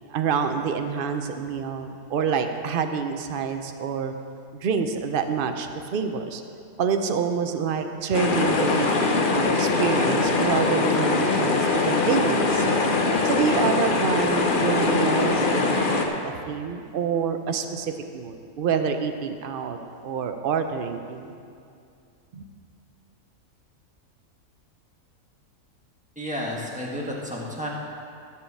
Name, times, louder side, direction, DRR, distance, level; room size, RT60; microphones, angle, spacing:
voice 1, 0.1-4.1 4.6-6.4 6.8-12.7 13.2-19.8 20.0-21.3 22.3-22.4, right 6 dB, 60° right, 7 dB, 0.5 m, -27 dB
sound 1, 8.1-16.1, left 3 dB, 45° left, 0.8 m, -22 dB
voice 2, 26.1-27.7, equal, 5° right, -4 dB, 1.4 m, -31 dB
13.5 x 4.8 x 7.0 m, 2.4 s
omnidirectional pair, 1.6 m